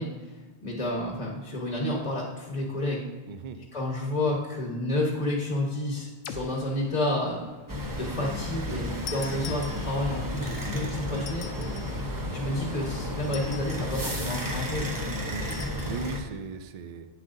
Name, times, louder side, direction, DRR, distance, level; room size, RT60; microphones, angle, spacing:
voice 1, 0.0-3.1 3.7-7.5 7.9-12.0 12.3-15.1, left 1 dB, 30° left, -2 dB, 1.1 m, -30 dB
voice 2, 3.3-3.6 11.0-11.2 15.3-17.1, right 4 dB, 60° right, 10 dB, 0.4 m, -38 dB
sound 1, 6.2-10.1, left 5 dB, 85° left, 0.9 m, -48 dB
sound 2, 7.7-16.2, left 1 dB, 20° right, 0.8 m, -33 dB
sound 3, 9.1-10.2 11.2-12.0 13.2-14.0 15.5-16.0, left 6 dB, 65° left, 0.7 m, -43 dB
9.1 x 7.5 x 2.6 m, 1.3 s
omnidirectional pair, 1.2 m